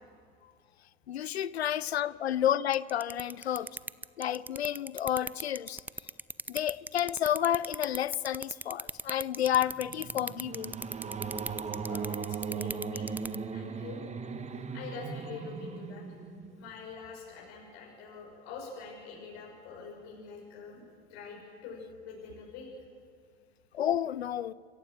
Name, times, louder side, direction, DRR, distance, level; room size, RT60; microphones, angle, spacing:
voice 1, 1.1-3.7 4.2-5.8 6.5-10.8 23.7-24.5, left 11 dB, 85° left, 0.6 m, -30 dB
sound 1, 2.7-13.4, right 2 dB, 5° right, 0.5 m, -37 dB
sound 2, 9.5-16.8, right 5 dB, 20° right, 1.5 m, -38 dB
voice 2, 11.9-13.0 13.5-14.0 14.7-16.2 16.6-20.8 21.1-22.7, left 5 dB, 60° left, 6.4 m, -45 dB
25.5 x 15.5 x 7.6 m
hypercardioid pair, 80°, 31 cm